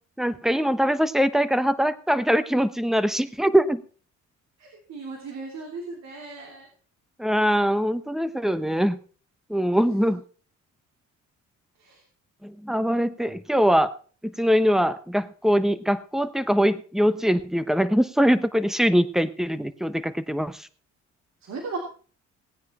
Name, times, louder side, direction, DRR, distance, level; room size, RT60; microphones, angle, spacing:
voice 1, 0.2-3.8 7.2-9.0 9.5-10.2 12.4-13.9 14.2-20.7, equal, ahead, 13 dB, 1.0 m, -22 dB
voice 2, 4.6-6.7 9.5-9.8 11.8-12.0 21.4-21.8, right 4 dB, 65° right, 1 dB, 3.1 m, -37 dB
17.5 x 9.5 x 4.3 m, 0.42 s
cardioid pair, 90°, 30 cm